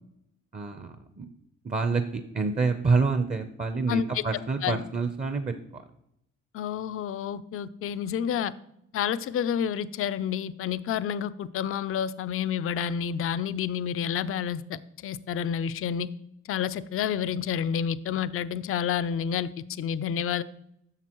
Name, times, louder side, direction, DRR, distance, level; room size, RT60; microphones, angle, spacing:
voice 1, 0.5-1.3 1.6-5.5, right 4 dB, 25° right, 8 dB, 0.6 m, -27 dB
voice 2, 3.9-4.2 4.6-4.8 6.5-8.5 8.9-16.1 16.5-19.5 19.8-20.4, left 8 dB, 45° left, 15 dB, 0.4 m, -29 dB
10.5 x 6.7 x 3.0 m, 0.77 s
cardioid pair, 90°, 30 cm